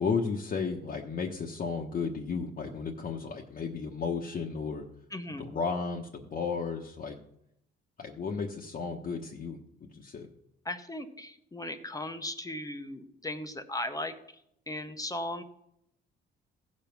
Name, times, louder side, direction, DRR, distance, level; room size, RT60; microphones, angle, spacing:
voice 1, 0.0-4.8 5.4-7.2 8.0-10.3, left 5 dB, 45° left, -1 dB, 1.2 m, -33 dB
voice 2, 5.1-5.5 10.6-14.4 14.7-15.4, left 1 dB, 15° left, 8 dB, 0.9 m, -37 dB
15.5 x 5.3 x 5.9 m, 0.76 s
cardioid pair, 90°, 20 cm